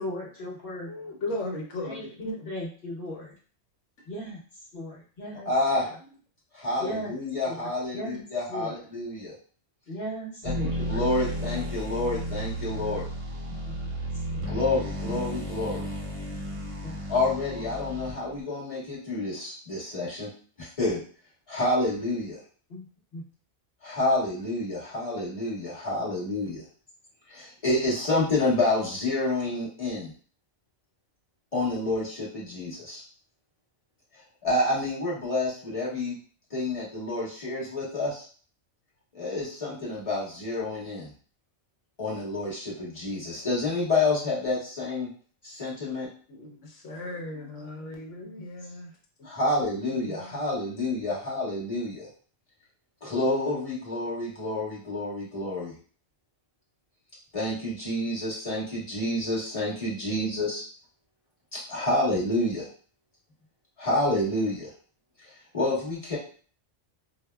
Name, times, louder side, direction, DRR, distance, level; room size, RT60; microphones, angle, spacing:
voice 1, 0.0-0.9 1.8-3.3 4.1-4.4 4.7-5.5 6.8-7.1 7.5-7.6 7.9-8.2 8.5-8.7 9.9-10.7 13.7-13.8 14.3-14.6 15.1-15.2 16.8-17.0 22.7-22.9 23.1-23.2, equal, 50° left, -6 dB, 1.1 m, -37 dB
voice 2, 0.9-2.5 46.3-48.9 50.0-50.2, left 2 dB, 75° left, 1 dB, 1.1 m, -36 dB
voice 3, 5.4-5.9 6.5-9.3 10.4-10.5 10.9-13.1 14.5-15.9 17.1-20.3 20.6-21.0 21.5-22.4 23.8-26.6 27.3-30.1 31.5-33.0 34.4-36.2 36.5-38.2 39.1-41.1 42.0-45.1 45.4-46.1 49.2-52.1 53.0-55.7 57.3-60.6 61.5-62.7 63.8-64.7 65.2-66.2, left 2 dB, 30° left, -7 dB, 1.2 m, -28 dB
sound 1, 10.4-18.4, equal, 40° right, 0.5 m, -33 dB
4.6 x 2.1 x 2.2 m, 0.42 s
omnidirectional pair, 1.2 m